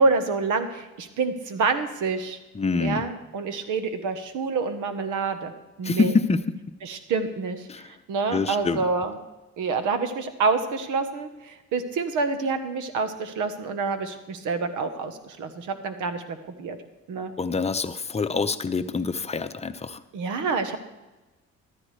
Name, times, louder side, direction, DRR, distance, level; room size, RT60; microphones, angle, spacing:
voice 1, 0.0-2.4 2.8-5.5 5.8-6.2 6.8-9.2 9.6-16.8 17.1-17.3 20.1-20.8, right 4 dB, 90° right, 9 dB, 1.2 m, -27 dB
voice 2, 2.6-3.0 5.8-6.4 7.7-7.8 8.3-8.8 17.4-20.0, left 4 dB, 20° left, 9 dB, 0.7 m, -25 dB
14.5 x 13.0 x 3.3 m, 1.1 s
cardioid pair, 90°, 30 cm